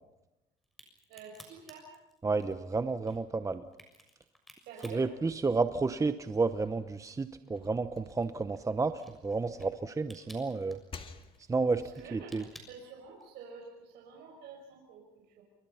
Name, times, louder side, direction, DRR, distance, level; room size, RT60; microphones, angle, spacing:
Crack, 0.6-6.1 6.5-13.5, equal, ahead, 6.6 m, -57 dB
voice 1, 1.1-1.9 4.6-5.1 11.8-12.4 12.7-15.4, right 5 dB, 85° right, -1 dB, 5.8 m, -49 dB
voice 2, 2.2-3.6 4.9-8.9 9.2-10.8 11.5-11.8 12.1-12.4, right 4 dB, 20° right, 11 dB, 0.9 m, -31 dB
sound 1, 6.5-9.6 10.0-11.8, left 4 dB, 30° left, 2.1 m, -53 dB
28.0 x 24.5 x 5.7 m, 0.94 s
cardioid pair, 110°, 17 cm